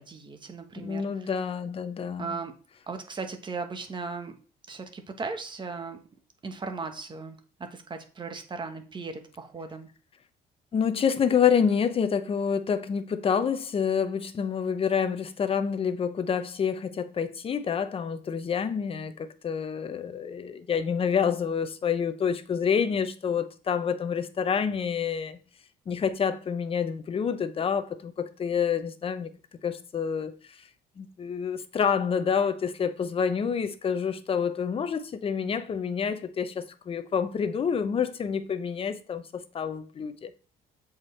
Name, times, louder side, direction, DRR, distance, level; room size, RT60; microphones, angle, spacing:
voice 1, 0.0-1.3 2.2-2.5 2.9-4.4 4.7-6.0 6.4-9.9, right 4 dB, 25° right, 1.1 m, -37 dB
voice 2, 0.8-2.3 10.7-25.4 25.9-29.3 29.6-30.6 31.0-40.4, left 7 dB, 35° left, 0.7 m, -28 dB
7.4 x 4.6 x 3.2 m
cardioid pair, 110°, 17 cm